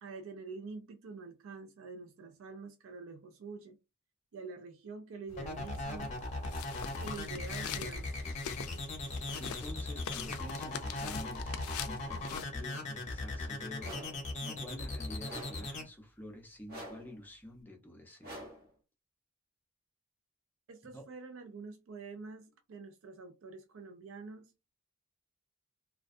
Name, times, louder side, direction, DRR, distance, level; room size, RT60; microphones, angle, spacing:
voice 1, 0.0-3.8 4.3-6.2 7.0-8.2 20.7-24.5, right 4 dB, 70° right, 0.4 m, -46 dB
sound 1, 5.3-12.4, left 6 dB, 85° left, 0.4 m, -43 dB
sound 2, 5.4-15.8, left 2 dB, 30° left, 0.8 m, -39 dB
voice 2, 9.4-18.4 20.9-21.0, left 1 dB, 10° left, 0.5 m, -49 dB
sound 3, 13.8-14.3 15.3-15.7 16.7-17.2 18.2-18.7, equal, 45° right, 0.9 m, -46 dB
2.4 x 2.2 x 2.5 m
head